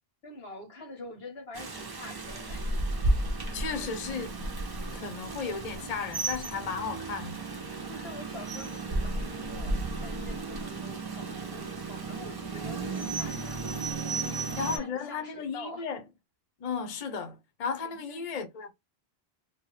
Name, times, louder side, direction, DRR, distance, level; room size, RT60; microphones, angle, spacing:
voice 1, 0.2-2.8 7.9-13.6 14.1-15.9 17.8-18.3, left 2 dB, 90° left, 1.4 m, -46 dB
Rain, 1.5-14.8, right 2 dB, 35° right, 0.3 m, -33 dB
voice 2, 3.5-4.4 4.9-7.4 14.6-16.0 16.6-18.7, left 5 dB, 45° left, 0.7 m, -34 dB
2.8 x 2.2 x 3.2 m
omnidirectional pair, 1.0 m